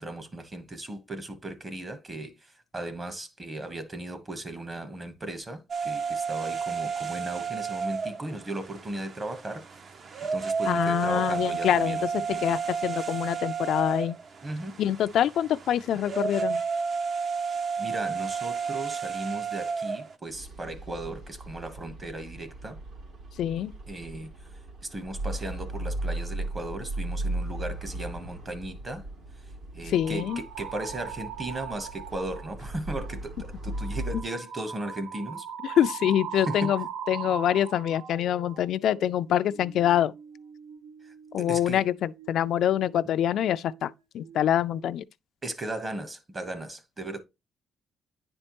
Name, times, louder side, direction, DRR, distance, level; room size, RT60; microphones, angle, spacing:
voice 1, 0.0-9.6 10.3-12.6 14.4-14.8 17.8-22.8 23.9-29.1 29.3-35.5 36.5-36.7 41.0-41.8 45.4-47.2, right 1 dB, 25° right, 1.0 m, -37 dB
sound 1, 5.7-20.1, right 5 dB, 45° right, 0.6 m, -32 dB
voice 2, 10.7-12.1 12.4-14.2 14.8-16.6 23.4-23.7 29.9-30.4 35.6-40.1 41.3-45.0, left 11 dB, 70° left, 0.3 m, -25 dB
sound 2, 20.3-34.2, right 1 dB, 70° right, 2.7 m, -37 dB
sound 3, 29.9-32.5 32.9-33.2 33.6-44.0 44.2-44.9, right 8 dB, 85° right, 0.8 m, -41 dB
9.9 x 4.3 x 3.0 m
cardioid pair, 135°, 0 cm